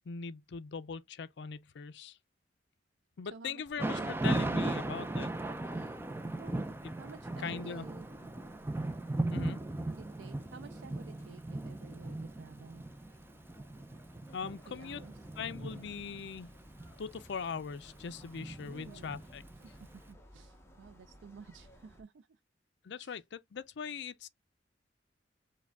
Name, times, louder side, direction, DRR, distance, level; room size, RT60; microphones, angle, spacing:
voice 1, 0.1-2.2 3.2-5.3 7.4-7.9 9.3-9.6 14.3-15.0 15.4-16.5 17.0-19.4 22.8-24.3, left 6 dB, 65° left, 0.5 m, -41 dB
voice 2, 3.3-4.1 6.4-6.6 7.0-8.1 9.9-12.9 14.7-15.1 18.6-19.2 19.9-22.4 23.0-23.2, right 5 dB, 75° right, 0.4 m, -52 dB
sound 1, 3.6-22.0, equal, 15° left, 0.8 m, -59 dB
Thunder / Rain, 3.8-19.8, right 2 dB, 10° right, 0.5 m, -37 dB
4.8 x 2.2 x 3.5 m
head